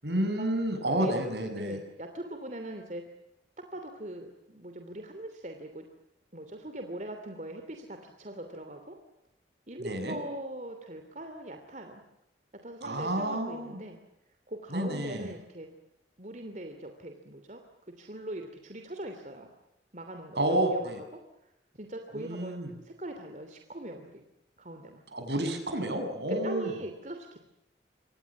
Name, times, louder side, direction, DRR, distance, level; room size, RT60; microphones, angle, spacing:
voice 1, 0.0-1.8 9.8-10.2 12.8-13.8 14.7-15.3 20.4-21.0 22.1-22.7 25.1-26.7, right 1 dB, 70° right, 7 dB, 7.3 m, -30 dB
voice 2, 1.0-3.0 3.6-5.8 6.3-9.0 9.7-12.0 12.6-14.0 14.5-15.7 16.2-19.5 19.9-20.4 20.7-22.6 22.8-24.2 24.6-25.0 26.3-27.5, right 1 dB, 40° right, 5 dB, 2.9 m, -41 dB
28.0 x 25.0 x 7.3 m, 0.84 s
head